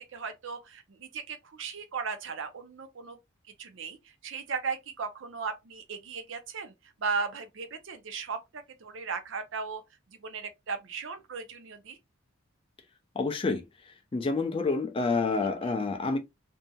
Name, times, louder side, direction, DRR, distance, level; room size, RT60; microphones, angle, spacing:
voice 1, 0.1-3.2 3.6-4.0 4.2-6.7 7.0-9.8 10.2-12.0 15.4-15.5, right 5 dB, 60° right, 0.6 m, -36 dB
voice 2, 13.2-13.6 14.1-16.2, left 3 dB, 25° left, 0.4 m, -28 dB
2.7 x 2.6 x 2.2 m
head